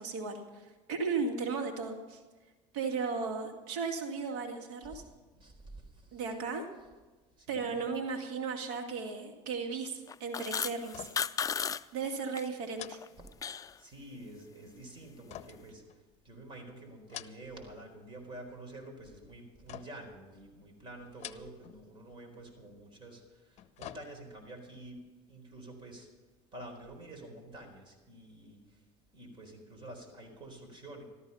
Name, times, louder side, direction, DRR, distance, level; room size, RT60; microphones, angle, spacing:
voice 1, 0.0-2.2 2.7-5.0 6.1-6.7 7.5-11.1 11.9-13.0, right 4 dB, 75° right, 4 dB, 2.2 m, -35 dB
voice 2, 5.3-6.2 7.4-7.8 13.8-15.8 16.2-26.1 26.5-28.8 29.1-31.0, right 1 dB, 30° right, 3 dB, 4.3 m, -49 dB
sound 1, 10.1-11.8 12.1-12.4 12.8-13.7, left 7 dB, 20° left, 0.4 m, -34 dB
sound 2, 10.8-11.4 11.7-11.9 12.7-13.8 15.3-16.4 16.9-17.7 18.0-18.6 19.7-20.2 21.1-21.8 22.1-22.2 23.3-24.5 24.9-25.0, left 12 dB, 45° left, 0.9 m, -48 dB
14.0 x 13.5 x 5.6 m, 1.3 s
supercardioid pair, 105°, 16 cm